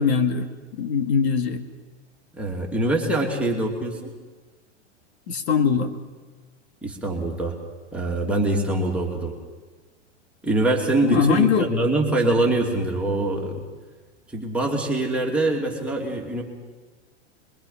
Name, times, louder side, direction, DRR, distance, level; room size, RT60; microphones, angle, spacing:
voice 1, 0.0-1.6 5.3-5.9 11.0-11.7, left 6 dB, 60° left, 7 dB, 2.1 m, -22 dB
voice 2, 2.4-4.1 6.8-7.5 7.9-9.3 10.4-13.6 14.3-16.4, right 2 dB, 5° right, -2 dB, 2.8 m, -24 dB
27.0 x 22.5 x 5.8 m, 1.3 s
supercardioid pair, 150°, 36 cm